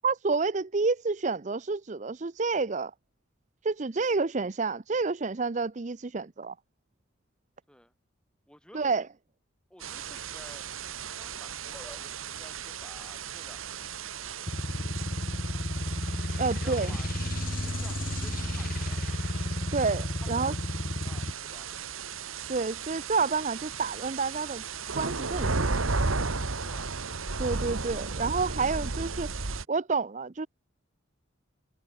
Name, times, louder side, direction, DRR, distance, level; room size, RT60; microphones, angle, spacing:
voice 1, 0.0-2.9 3.6-6.5 8.7-9.1 16.4-17.0 19.7-20.5 22.5-24.6 24.9-25.7 27.4-29.3 29.7-30.5, right 4 dB, 35° right, 0.6 m, -29 dB
voice 2, 8.5-9.0 9.7-10.7 11.1-14.5 16.4-19.3 20.2-21.8 26.3-26.9, equal, 5° left, 5.7 m, -53 dB
sound 1, 9.8-29.6, right 4 dB, 85° right, 1.7 m, -35 dB
sound 2, 14.5-21.3, left 1 dB, 45° left, 1.6 m, -32 dB
head